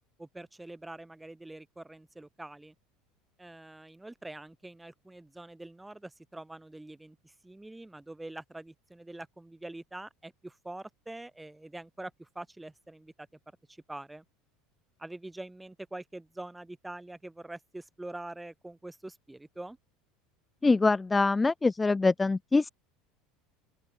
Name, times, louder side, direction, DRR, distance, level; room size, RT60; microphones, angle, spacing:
voice 1, 0.2-2.7 3.4-13.3 13.7-14.2 15.0-19.8, right 2 dB, 10° right, 3.7 m, -45 dB
voice 2, 20.6-22.7, left 3 dB, 15° left, 0.7 m, -24 dB
open air
hypercardioid pair, 95°, 0 cm